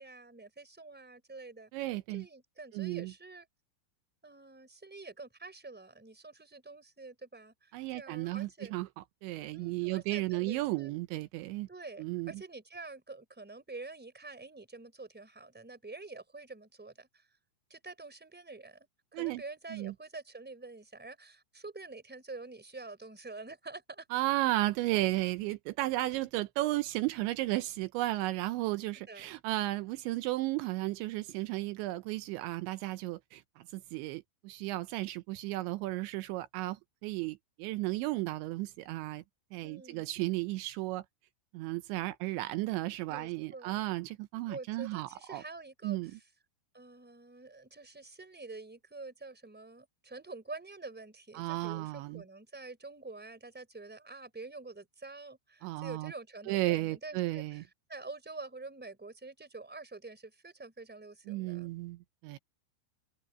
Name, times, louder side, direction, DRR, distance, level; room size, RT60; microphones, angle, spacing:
voice 1, 0.0-1.7 2.1-3.5 4.2-8.7 9.5-10.9 11.7-17.3 17.7-24.1 29.1-29.4 39.6-40.1 43.1-43.9 44.5-46.2 46.7-61.7, right 3 dB, ahead, 3.5 m, -47 dB
voice 2, 1.7-2.2 2.7-3.1 7.7-8.9 9.2-11.7 12.0-12.3 19.1-19.4 19.7-19.9 24.1-39.2 39.5-41.0 41.5-45.4 45.8-46.1 51.4-52.2 55.6-56.1 56.5-57.6 61.3-62.4, right 18 dB, 80° right, 3.0 m, -34 dB
omnidirectional pair, 5.3 m